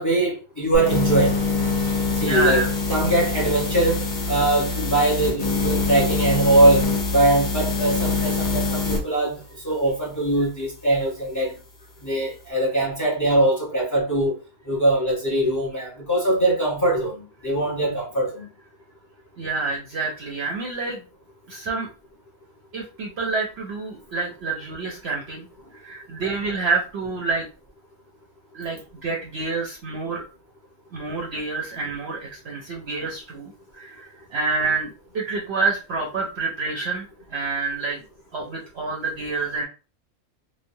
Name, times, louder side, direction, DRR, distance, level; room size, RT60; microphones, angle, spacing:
voice 1, 0.0-1.4 2.2-2.6 2.9-4.0 4.3-11.5 12.0-14.3 14.7-18.5, right 2 dB, 15° left, 0.7 m, -22 dB
sound 1, 0.7-9.0, left 3 dB, 50° left, 0.5 m, -24 dB
voice 2, 2.2-2.7 19.4-21.0 21.5-21.9 22.7-25.5 25.8-27.5 28.5-30.2 30.9-38.0 38.3-39.6, right 3 dB, 65° right, 0.7 m, -28 dB
3.0 x 2.0 x 2.6 m
omnidirectional pair, 1.5 m